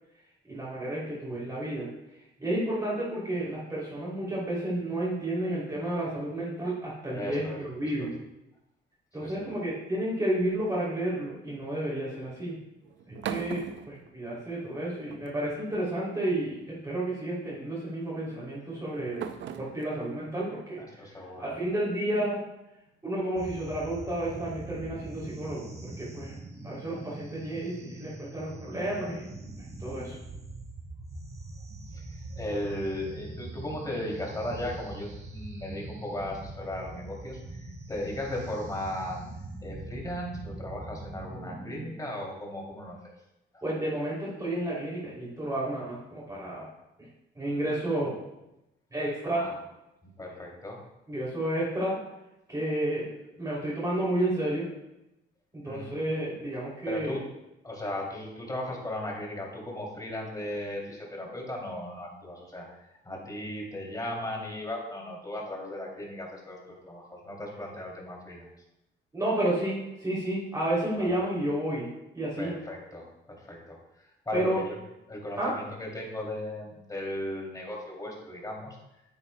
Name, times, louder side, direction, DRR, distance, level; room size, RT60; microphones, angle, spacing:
voice 1, 0.5-1.9 2.4-8.1 9.1-12.6 13.1-19.3 19.6-20.8 21.4-22.4 23.0-26.3 26.6-29.2 29.6-30.2 43.6-46.7 47.3-48.2 48.9-49.5 51.1-52.0 52.5-53.1 53.4-54.7 55.5-57.2 69.1-71.9 72.1-72.5 74.3-74.6 75.4-75.5, right 1 dB, 15° right, -6 dB, 3.0 m, -31 dB
voice 2, 7.1-7.6 8.0-8.1 9.2-9.5 20.8-21.5 31.6-39.2 39.6-43.1 49.3-49.5 50.0-50.8 55.6-55.9 56.8-57.2 57.6-68.5 71.0-71.2 72.4-74.8 75.1-78.8, left 1 dB, 20° left, -1 dB, 2.8 m, -37 dB
sound 1, 10.4-10.9 12.8-14.7 15.1-15.8 16.8-17.1 18.3-21.6, right 8 dB, 70° right, 0.6 m, -41 dB
sound 2, 23.4-41.9, right 2 dB, 35° right, 2.5 m, -42 dB
9.7 x 8.4 x 2.2 m, 0.91 s
cardioid pair, 90°, 20 cm